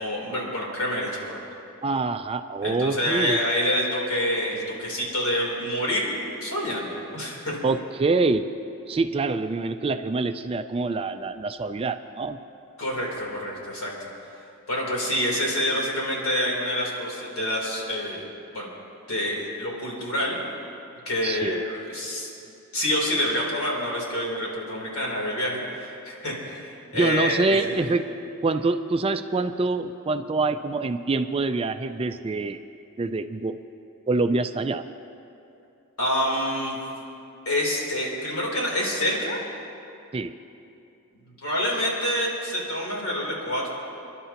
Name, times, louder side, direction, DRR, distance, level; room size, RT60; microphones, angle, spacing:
voice 1, 0.0-1.4 2.6-6.1 6.4-7.5 12.8-14.1 14.7-18.2 18.5-18.7 19.1-20.4 21.0-22.3 22.7-27.8 36.0-36.8 37.4-39.4 41.4-43.7, left 1 dB, 70° left, -3 dB, 3.4 m, -27 dB
voice 2, 1.8-3.4 7.6-8.5 8.9-12.4 21.2-21.6 26.9-28.1 28.4-32.6 33.0-33.6 34.1-34.8 40.1-40.3, right 3 dB, 25° right, 9 dB, 0.3 m, -25 dB
29.5 x 11.0 x 2.9 m, 2.7 s
head